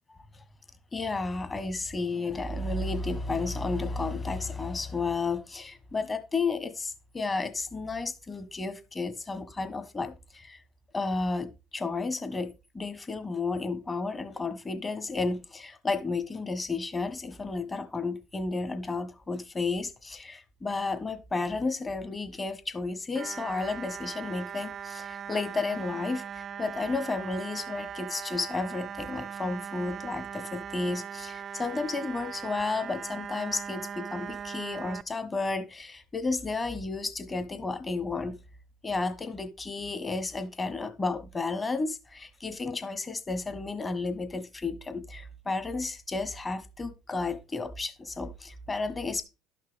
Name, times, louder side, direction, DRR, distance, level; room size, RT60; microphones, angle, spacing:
voice 1, 0.9-10.6 10.9-38.4 38.8-49.2, left 3 dB, 25° left, 1.4 m, -32 dB
sound 1, 23.2-35.0, right 8 dB, 40° right, 0.4 m, -39 dB
11.5 x 5.8 x 3.5 m
supercardioid pair, 80°, 0 cm